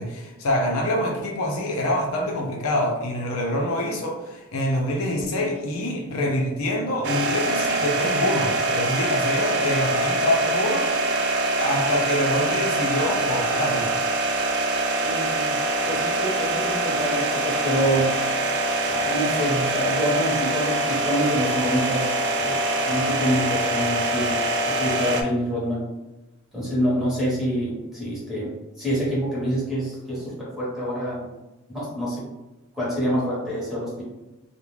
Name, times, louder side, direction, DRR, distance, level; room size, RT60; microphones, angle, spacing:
voice 1, 0.0-11.1 11.6-14.0, left 1 dB, 70° left, 0 dB, 0.5 m, -26 dB
sound 1, 7.0-25.2, right 2 dB, 55° right, 0.3 m, -24 dB
voice 2, 15.0-18.1 18.8-22.6 22.9-24.4 24.7-25.8 26.5-31.2 31.7-32.2 32.7-34.0, equal, ahead, -8 dB, 0.9 m, -26 dB
2.3 x 2.1 x 3.1 m, 1.0 s
head